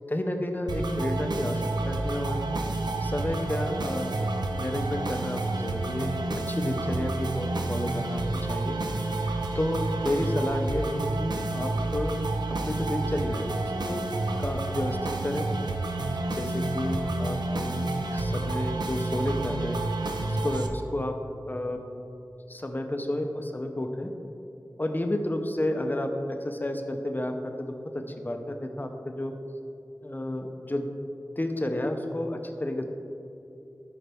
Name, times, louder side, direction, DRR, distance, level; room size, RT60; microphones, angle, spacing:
voice 1, 0.1-2.4 3.0-4.1 4.6-8.2 8.5-8.8 9.2-9.3 9.5-12.1 12.5-14.0 14.4-15.5 16.4-17.8 18.1-19.8 20.3-21.2 21.5-21.8 22.5-24.1 24.8-29.3 30.0-30.9 31.4-32.8, left 1 dB, 25° left, 5 dB, 0.7 m, -31 dB
sound 1, 0.7-20.7, right 2 dB, 90° right, 0.6 m, -29 dB
13.0 x 5.0 x 3.5 m, 2.8 s
wide cardioid pair, 70°, 7 cm